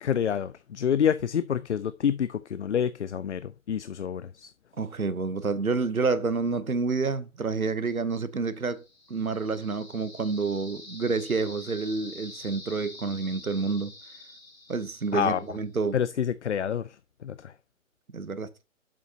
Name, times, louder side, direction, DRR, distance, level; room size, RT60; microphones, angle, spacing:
voice 1, 0.0-4.5 15.1-15.4 15.9-16.8 17.2-17.5, left 8 dB, 55° left, 0.5 m, -27 dB
voice 2, 4.8-8.8 9.1-13.9 14.7-16.0 18.1-18.5, right 4 dB, 85° right, 1.0 m, -28 dB
sound 1, 8.6-15.6, left 2 dB, 75° left, 4.8 m, -47 dB
7.6 x 7.5 x 2.8 m
figure-of-eight pair, 135°, 41 cm